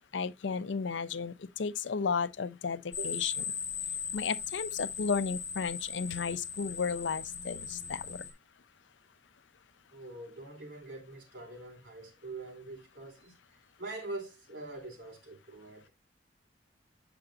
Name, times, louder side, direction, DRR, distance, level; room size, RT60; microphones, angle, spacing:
voice 1, 0.1-3.3 4.1-8.2, left 5 dB, 80° left, 0.5 m, -33 dB
sound 1, 2.9-8.3, left 7 dB, 40° left, 1.2 m, -38 dB
voice 2, 9.9-15.9, right 2 dB, 70° right, 3.7 m, -44 dB
7.8 x 6.8 x 2.5 m
head